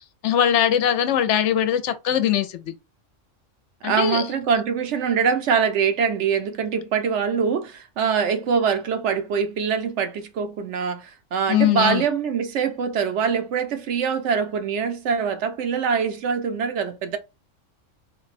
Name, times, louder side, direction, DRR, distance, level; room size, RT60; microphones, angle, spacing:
voice 1, 0.2-2.7 3.8-4.2 11.5-12.0, left 10 dB, 70° left, 0.8 m, -21 dB
voice 2, 3.8-17.2, right 6 dB, 70° right, 0.9 m, -23 dB
3.9 x 2.2 x 4.1 m
omnidirectional pair, 1.3 m